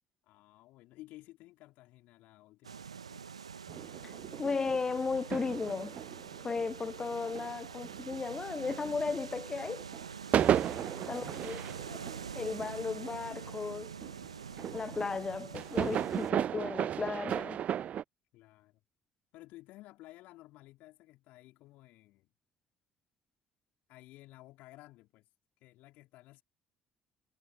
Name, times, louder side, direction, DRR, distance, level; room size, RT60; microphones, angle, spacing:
voice 1, 0.2-3.3 10.6-11.5 18.3-18.8 19.3-22.3 23.9-25.3 25.6-26.4, left 18 dB, 65° left, 4.0 m, -55 dB
sound 1, 2.6-16.3, right 6 dB, 85° right, 1.1 m, -45 dB
sound 2, 3.7-9.3 9.6-18.0, right 10 dB, 50° right, 0.5 m, -35 dB
voice 2, 4.4-6.0 6.4-9.9 11.1-11.6 11.9-12.0 12.3-13.9 14.7-17.6, left 4 dB, 25° left, 0.4 m, -35 dB
figure-of-eight pair, 50°, 3 cm